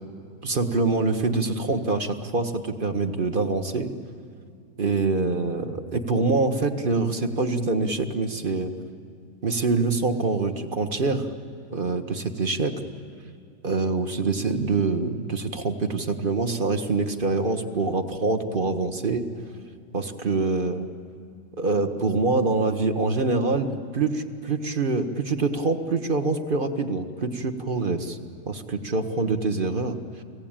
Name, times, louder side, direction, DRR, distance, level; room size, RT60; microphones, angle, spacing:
voice 1, 0.4-3.9 4.8-8.7 9.4-11.3 11.7-12.7 13.6-19.3 19.9-20.9 21.6-28.2 28.5-30.0, right 3 dB, 35° right, 7 dB, 1.3 m, -25 dB
30.0 x 19.5 x 8.9 m, 2.4 s
omnidirectional pair, 1.9 m